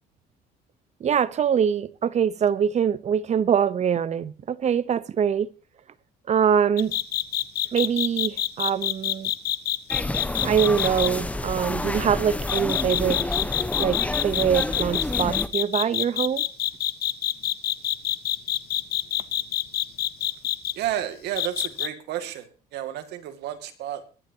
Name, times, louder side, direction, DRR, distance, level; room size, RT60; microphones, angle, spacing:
voice 1, 1.0-5.5 6.3-7.0 7.7-9.3 10.4-13.4 13.8-16.4, right 8 dB, 40° right, 0.9 m, -24 dB
sound 1, 6.8-11.1 12.5-20.7 21.4-21.9, left 13 dB, 70° left, 1.0 m, -26 dB
sound 2, 9.9-15.5, left 2 dB, 10° left, 1.0 m, -29 dB
voice 2, 20.7-24.1, right 12 dB, 80° right, 2.2 m, -31 dB
23.0 x 10.5 x 2.9 m
cardioid pair, 110°, 17 cm